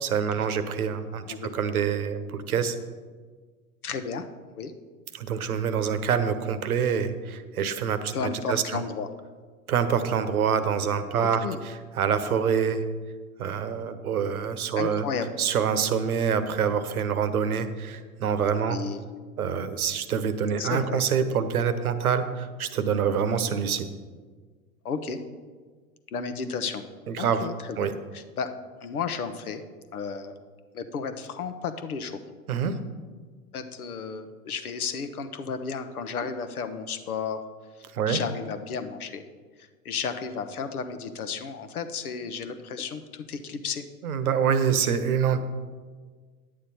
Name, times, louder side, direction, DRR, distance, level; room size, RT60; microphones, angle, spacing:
voice 1, 0.0-1.2 1.5-2.8 5.1-8.8 9.7-11.4 12.0-12.8 13.4-15.1 15.4-18.8 19.4-23.9 27.1-27.4 27.8-27.9 32.5-32.8 37.9-38.2 44.0-45.4, right 7 dB, 75° right, 11 dB, 1.0 m, -26 dB
voice 2, 3.8-4.2 4.5-4.7 8.1-9.1 11.2-11.6 14.7-15.3 18.5-19.0 20.6-21.0 24.8-25.2 26.1-26.8 27.2-28.5 28.8-29.6 29.9-30.3 30.7-32.2 33.5-37.4 37.7-39.2 39.6-43.8, left 6 dB, 75° left, 10 dB, 1.0 m, -33 dB
9.9 x 8.6 x 4.2 m, 1.5 s
figure-of-eight pair, 95°, 44 cm